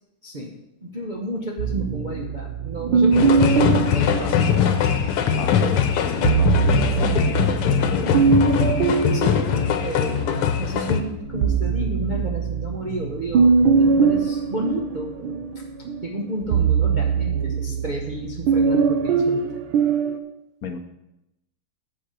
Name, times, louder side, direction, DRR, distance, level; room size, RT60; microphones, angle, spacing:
voice 1, 0.2-0.6 0.8-4.3 9.1-9.5 9.8-19.4, right 1 dB, 50° right, -1 dB, 0.5 m, -31 dB
sound 1, 1.6-5.1 6.0-10.5 10.9-20.2, right 5 dB, 70° right, 1.5 m, -22 dB
sound 2, 3.1-11.0, left 7 dB, 80° left, 1.7 m, -21 dB
voice 2, 5.3-8.6 20.6-20.8, left 5 dB, 60° left, 5 dB, 0.9 m, -32 dB
14.0 x 4.7 x 5.0 m, 0.89 s
omnidirectional pair, 2.4 m